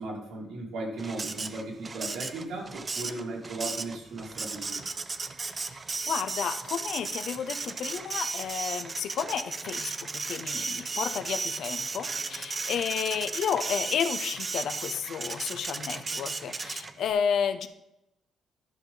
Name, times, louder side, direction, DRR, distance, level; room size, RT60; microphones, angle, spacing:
voice 1, 0.0-4.8, right 2 dB, 85° right, -2 dB, 2.4 m, -36 dB
Printer, 1.0-17.1, right 4 dB, 30° right, 0.5 m, -35 dB
voice 2, 6.1-17.7, left 7 dB, 70° left, 10 dB, 0.7 m, -32 dB
11.5 x 5.5 x 3.9 m, 0.87 s
cardioid pair, 90°, 0 cm